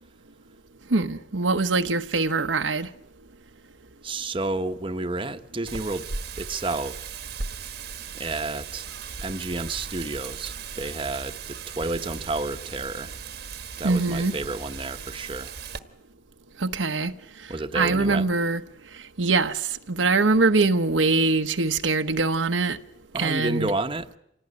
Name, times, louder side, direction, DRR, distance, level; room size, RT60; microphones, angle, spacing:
voice 1, 0.9-2.9 13.8-14.3 16.6-17.1 17.7-18.6 19.2-22.8 23.2-23.7, right 3 dB, 85° right, 1.1 m, -23 dB
voice 2, 4.0-6.1 6.3-7.2 8.1-8.9 9.2-13.2 13.8-15.5 17.5-18.3 23.1-24.1, right 2 dB, 25° right, 1.0 m, -30 dB
Wind, 5.7-15.8, right 5 dB, 55° right, 1.2 m, -37 dB
27.0 x 18.0 x 9.8 m
head